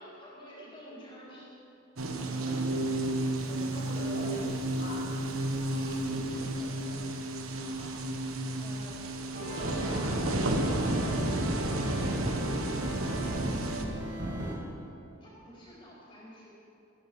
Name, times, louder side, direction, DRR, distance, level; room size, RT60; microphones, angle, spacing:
voice 1, 0.0-1.6 5.7-7.0 7.5-7.9 8.6-9.0 9.6-10.1 10.5-12.2 15.2-16.5, equal, 25° left, -7 dB, 4.4 m, -50 dB
sound 1, 2.0-13.8, right 1 dB, 90° right, 1.2 m, -32 dB
voice 2, 2.1-2.9 3.5-5.3 7.7-7.9 8.5-8.6 9.3-10.2, left 1 dB, 45° left, -9 dB, 2.6 m, -43 dB
sound 2, 9.3-14.5, right 1 dB, 55° right, 3.1 m, -35 dB
14.0 x 14.0 x 5.5 m, 2.8 s
head